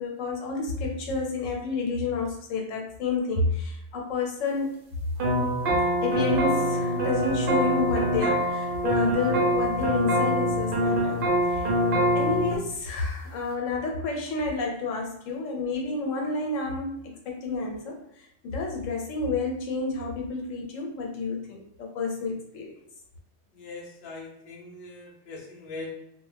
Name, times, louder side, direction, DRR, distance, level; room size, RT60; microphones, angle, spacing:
voice 1, 0.0-4.7 6.0-11.7 12.1-22.7, left 3 dB, 80° left, 1 dB, 1.0 m, -30 dB
sound 1, 5.2-12.6, equal, 55° right, 0.6 m, -24 dB
voice 2, 23.5-25.9, left 3 dB, 60° left, -2 dB, 0.6 m, -41 dB
2.3 x 2.0 x 3.2 m, 0.77 s
omnidirectional pair, 1.3 m